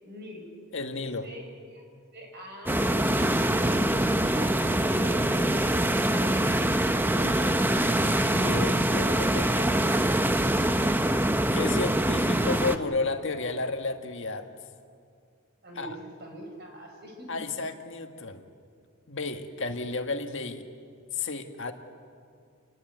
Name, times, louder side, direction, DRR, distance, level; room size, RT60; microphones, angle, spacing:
voice 1, 0.0-0.5 1.2-6.8 7.1-7.6 15.6-17.4, right 1 dB, 50° right, 3 dB, 5.7 m, -44 dB
voice 2, 0.7-1.3 7.2-7.5 8.2-10.1 11.5-14.5 15.8-16.0 17.3-18.4 19.1-20.7 21.1-21.7, left 3 dB, 60° left, 5 dB, 1.8 m, -32 dB
sound 1, 2.7-12.8, right 1 dB, 10° right, 0.8 m, -24 dB
29.0 x 19.0 x 9.3 m, 2.3 s
head